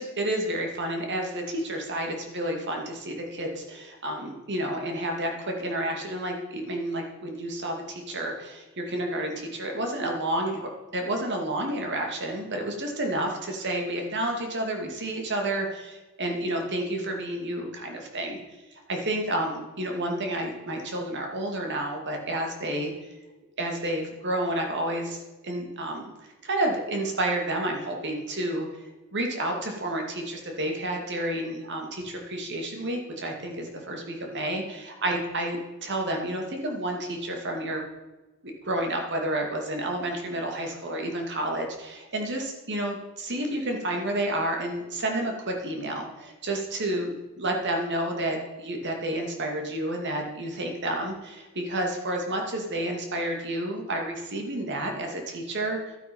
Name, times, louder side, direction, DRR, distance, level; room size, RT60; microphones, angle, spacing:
voice 1, 0.0-18.4 18.9-22.9 23.6-26.1 26.4-28.8 29.1-37.8 38.4-55.8, right 1 dB, 55° right, 2 dB, 2.3 m, -30 dB
12.5 x 8.9 x 5.4 m, 1.2 s
head